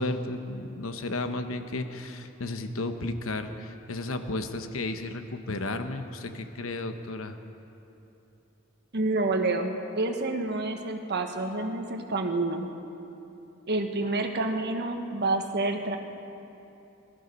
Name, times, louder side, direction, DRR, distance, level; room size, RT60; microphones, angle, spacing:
voice 1, 0.0-7.4, left 2 dB, 70° left, 8 dB, 1.0 m, -33 dB
voice 2, 8.9-12.7 13.7-16.0, right 2 dB, 55° right, 5 dB, 1.2 m, -28 dB
18.0 x 13.0 x 5.4 m, 3.0 s
head